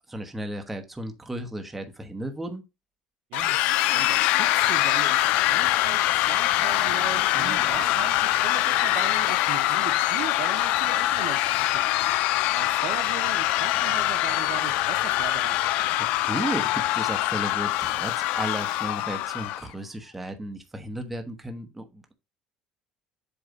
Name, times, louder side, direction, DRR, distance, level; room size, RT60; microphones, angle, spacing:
voice 1, 0.1-2.6 7.3-7.8 16.0-22.1, right 1 dB, 5° right, 1.0 m, -34 dB
sound 1, 3.3-19.6, left 15 dB, 80° left, 0.4 m, -24 dB
voice 2, 3.3-3.6 3.9-11.8 12.5-15.7, right 12 dB, 65° right, 0.7 m, -38 dB
8.0 x 3.2 x 5.1 m
cardioid pair, 170°, 2 cm